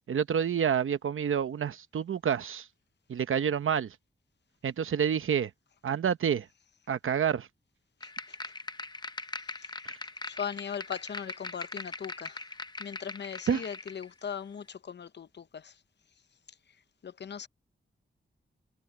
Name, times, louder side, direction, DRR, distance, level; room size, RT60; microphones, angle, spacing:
voice 1, 0.1-2.7 3.1-3.9 4.6-5.5 5.8-6.5 6.9-7.5 13.5-13.6, right 8 dB, 90° right, 0.9 m, -28 dB
voice 2, 8.0-8.4 9.5-9.7 10.2-12.4 12.8-15.7 17.0-17.5, left 7 dB, 60° left, 0.7 m, -39 dB
sound 1, 8.0-14.0, left 3 dB, 20° left, 0.6 m, -41 dB
wide cardioid pair, 160°, 20 cm